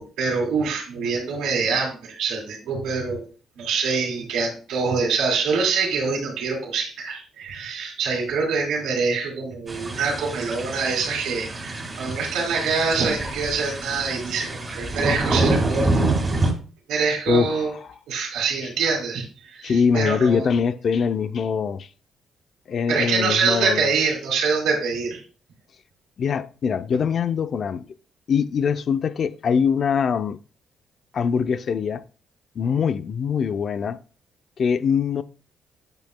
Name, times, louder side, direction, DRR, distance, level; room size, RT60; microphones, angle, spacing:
voice 1, 0.0-3.2 3.6-15.9 16.9-17.7 18.1-20.6 22.9-25.2, right 4 dB, 85° right, 2.3 m, -25 dB
sound 1, 9.7-16.5, right 2 dB, 25° right, 2.0 m, -26 dB
voice 2, 17.3-17.6 19.6-21.9 22.7-23.8 26.2-28.0 28.3-30.4 31.1-32.0 32.6-34.0 34.6-35.2, left 6 dB, 55° left, 0.5 m, -23 dB
8.8 x 5.8 x 2.2 m
cardioid pair, 90°, 0 cm